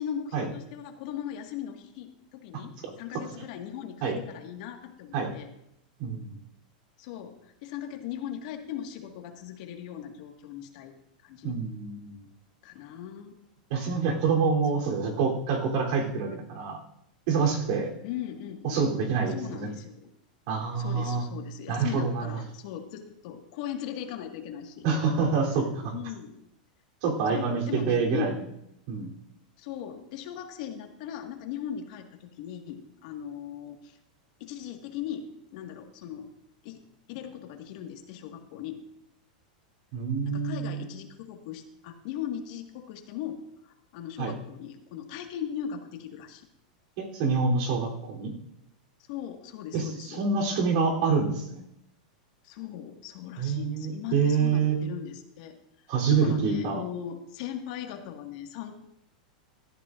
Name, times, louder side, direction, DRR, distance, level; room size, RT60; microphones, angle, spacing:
voice 1, 0.0-5.5 7.0-10.9 11.2-11.5 12.6-13.4 14.7-15.3 18.0-18.8 19.3-20.1 20.8-24.9 25.8-26.3 27.3-28.3 29.6-34.0 34.4-36.3 36.6-36.8 37.1-38.8 40.2-46.5 49.1-50.2 52.4-58.7, left 9 dB, 60° left, 4 dB, 1.8 m, -38 dB
voice 2, 6.0-6.4 11.4-12.1 13.7-16.8 17.3-17.9 18.6-19.7 20.5-21.2 21.7-22.3 24.8-25.9 27.0-28.3 28.9-29.1 39.9-40.9 44.2-44.3 47.0-48.3 49.7-51.6 53.4-54.8 55.9-56.8, right 5 dB, 60° right, 0 dB, 3.3 m, -26 dB
17.0 x 13.0 x 2.5 m, 0.80 s
supercardioid pair, 130°, 4 cm